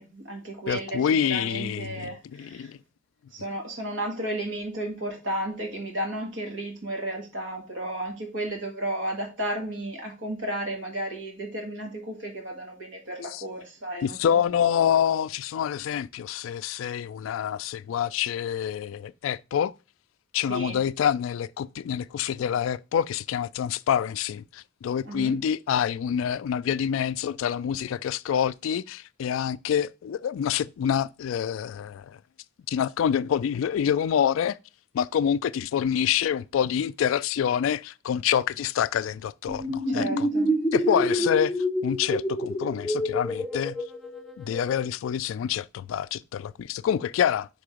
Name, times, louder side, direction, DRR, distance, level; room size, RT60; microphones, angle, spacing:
voice 1, 0.0-2.7 3.3-14.2 20.4-20.8 25.0-25.3 39.9-40.5 40.9-41.0, right 1 dB, 70° right, 1.8 m, -33 dB
voice 2, 0.7-2.1 2.4-2.8 13.3-13.4 14.0-19.7 20.3-32.2 32.7-34.6 34.9-40.3 40.7-41.5 41.8-43.8 44.4-47.5, left 8 dB, 80° left, 0.3 m, -26 dB
sound 1, 39.5-44.9, equal, ahead, 0.6 m, -27 dB
5.3 x 3.8 x 4.9 m
head